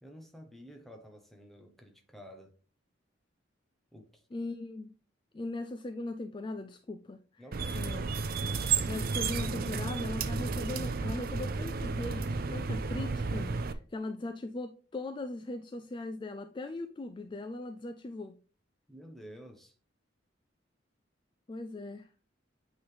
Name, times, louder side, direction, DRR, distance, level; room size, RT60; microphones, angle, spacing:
voice 1, 0.0-2.5 3.9-4.2 7.4-7.9 18.9-19.7, equal, ahead, 1.0 m, -51 dB
voice 2, 4.3-4.9 5.3-7.4 7.7-8.0 8.9-18.4 21.5-22.1, left 2 dB, 25° left, 0.3 m, -39 dB
sound 1, 7.5-13.7, right 4 dB, 50° right, 0.5 m, -32 dB
8.5 x 3.9 x 3.3 m
head